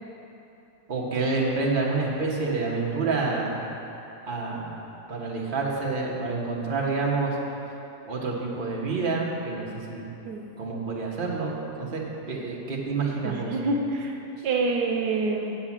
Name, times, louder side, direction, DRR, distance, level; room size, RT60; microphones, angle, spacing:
voice 1, 0.9-3.6 4.3-4.8 5.1-7.4 8.1-10.1 10.6-13.5, right 3 dB, 35° right, -3 dB, 1.3 m, -28 dB
voice 2, 13.2-14.2 14.4-15.6, right 3 dB, 80° right, 1 dB, 1.3 m, -26 dB
7.2 x 7.2 x 7.3 m, 2.9 s
omnidirectional pair, 1.7 m